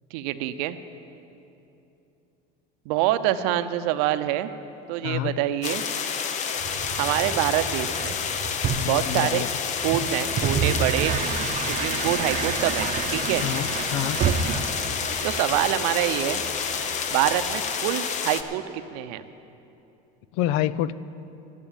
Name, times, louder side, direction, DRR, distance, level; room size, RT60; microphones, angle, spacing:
voice 1, 0.1-0.8 2.9-4.5 4.9-5.8 7.0-8.2 8.9-9.4 9.8-11.1 11.7-13.4 15.2-16.4 17.1-18.6 18.9-19.2, right 13 dB, 85° right, 11 dB, 0.7 m, -25 dB
voice 2, 5.0-5.4 8.7-9.5 13.4-14.2 20.3-20.9, left 13 dB, 75° left, 17 dB, 0.5 m, -27 dB
sound 1, 5.6-18.4, left 7 dB, 40° left, 0.7 m, -29 dB
sound 2, 6.6-17.6, right 6 dB, 40° right, 0.8 m, -30 dB
12.5 x 8.3 x 8.9 m, 2.9 s
cardioid pair, 135°, 19 cm